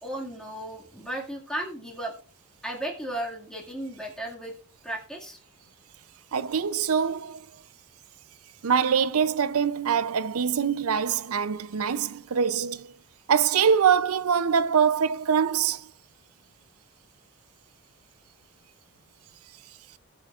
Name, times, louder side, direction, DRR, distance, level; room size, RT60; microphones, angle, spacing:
voice 1, 0.0-2.2 2.6-4.5 4.8-5.4, right 1 dB, 5° left, 2.1 m, -35 dB
voice 2, 6.3-7.4 8.6-12.9 13.3-15.9, right 7 dB, 75° right, 0.6 m, -24 dB
21.0 x 7.0 x 2.5 m
head